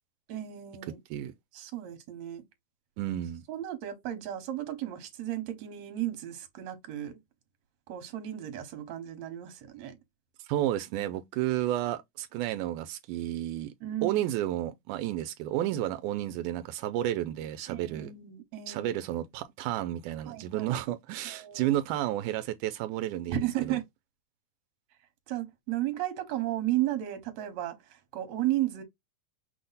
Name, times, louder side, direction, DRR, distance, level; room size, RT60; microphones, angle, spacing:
voice 1, 0.3-1.0 1.5-2.4 3.5-7.2 7.9-10.0 13.8-14.3 17.7-18.9 20.3-20.8 21.2-21.8 23.3-23.8 25.3-28.8, right 13 dB, 65° right, 2.2 m, -34 dB
voice 2, 3.0-3.4 10.5-13.7 14.0-18.1 18.7-23.8, right 13 dB, 90° right, 2.1 m, -31 dB
6.2 x 2.1 x 3.9 m
omnidirectional pair, 3.5 m